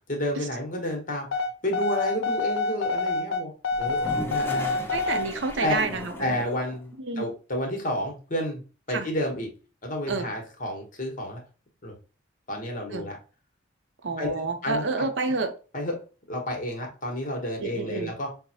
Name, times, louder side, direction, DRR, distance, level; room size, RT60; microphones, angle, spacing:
voice 1, 0.1-1.3 1.6-3.5 3.8-4.8 5.6-5.8 6.2-8.6 8.9-9.5 9.8-11.4 11.8-11.9 12.5-13.2 14.2-15.1 15.7-15.9 16.3-18.3, left 1 dB, 40° left, 1.0 m, -30 dB
sound 1, 1.3-5.3, left 3 dB, 80° left, 0.6 m, -27 dB
Toilet flush, 3.7-6.8, left 1 dB, 10° left, 0.5 m, -37 dB
voice 2, 4.9-6.4 7.0-7.3 8.9-9.1 10.1-10.3 12.9-13.1 14.0-15.5 17.6-18.1, right 3 dB, 65° right, 0.6 m, -29 dB
5.4 x 2.1 x 2.7 m
head